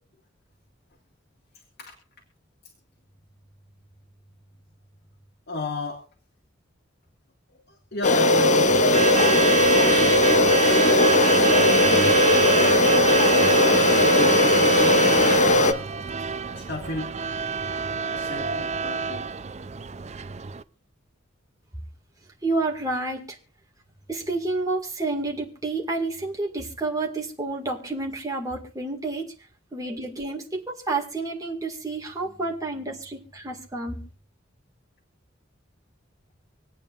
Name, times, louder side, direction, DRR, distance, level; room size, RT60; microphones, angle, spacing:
voice 1, 5.5-6.1 7.7-12.6 13.1-15.9 16.5-17.1 18.1-19.2, left 2 dB, 55° left, 1 dB, 2.1 m, -35 dB
sound 1, 8.0-15.7, left 1 dB, 40° left, 0.7 m, -18 dB
Truck / Alarm, 8.7-20.6, right 6 dB, 35° right, 0.5 m, -27 dB
voice 2, 22.4-23.4 24.1-29.3 29.7-34.0, right 3 dB, 20° right, -1 dB, 2.1 m, -29 dB
26.0 x 8.8 x 2.5 m, 0.35 s
head